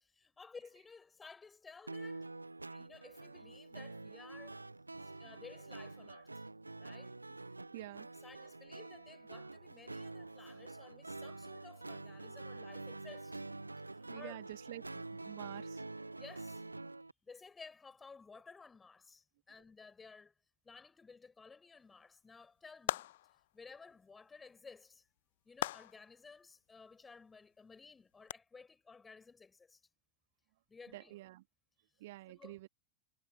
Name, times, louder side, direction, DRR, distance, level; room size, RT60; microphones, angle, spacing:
voice 1, 0.0-2.3 2.7-4.6 5.0-6.4 6.7-7.2 8.2-13.4 13.9-14.4 16.2-16.6 17.2-20.3 20.6-23.1 23.5-25.1 25.4-29.8 30.7-31.1 32.3-32.6, left 4 dB, 15° left, 5.4 m, -56 dB
sound 1, 1.9-17.1, right 2 dB, 80° right, 0.8 m, -47 dB
voice 2, 7.6-8.1 8.3-8.6 14.1-15.8 30.9-31.4 32.0-32.7, right 17 dB, 55° right, 2.6 m, -49 dB
sound 2, 22.9-23.5 25.6-26.2 28.3-28.4, left 15 dB, 55° left, 0.7 m, -38 dB
figure-of-eight pair, 90°, 0 cm